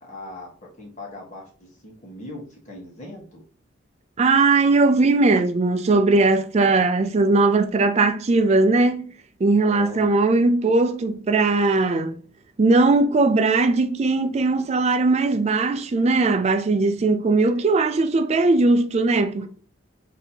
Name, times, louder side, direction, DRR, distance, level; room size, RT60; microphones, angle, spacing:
voice 1, 0.0-0.5 0.8-3.4 9.6-10.2 17.2-17.6 19.3-19.5, left 2 dB, 35° left, 1.1 m, -40 dB
voice 2, 4.2-9.0 9.4-12.2 12.6-19.5, right 3 dB, 30° right, 0.3 m, -19 dB
4.0 x 2.8 x 2.7 m
head